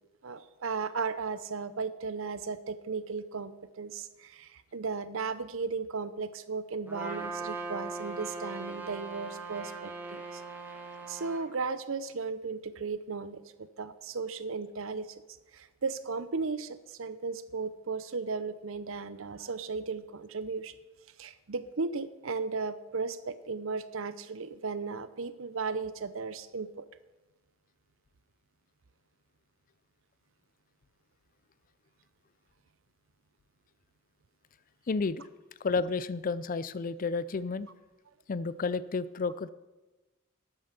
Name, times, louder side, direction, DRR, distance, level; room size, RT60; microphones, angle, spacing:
voice 1, 0.2-10.4 11.1-15.1 15.5-20.7 21.2-26.9, right 4 dB, 65° right, 14 dB, 0.7 m, -36 dB
Trumpet, 6.9-11.4, right 3 dB, 10° right, 1.7 m, -39 dB
voice 2, 34.9-35.2 35.6-37.7 38.3-39.5, left 4 dB, 40° left, 16 dB, 0.4 m, -31 dB
12.0 x 8.8 x 5.9 m, 1.1 s
head